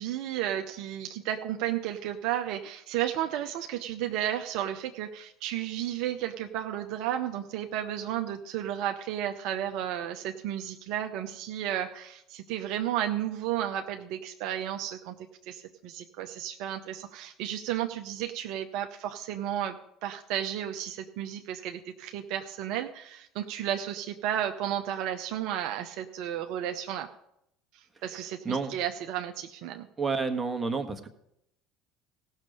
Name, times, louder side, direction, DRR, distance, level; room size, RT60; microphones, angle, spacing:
voice 1, 0.0-15.2 15.4-19.8 20.0-27.1 27.7-29.9, right 11 dB, 65° right, 6 dB, 0.7 m, -33 dB
voice 2, 28.4-28.8 30.0-31.1, right 4 dB, 20° right, 7 dB, 1.4 m, -30 dB
16.5 x 6.4 x 5.4 m, 0.77 s
hypercardioid pair, 65°, 0 cm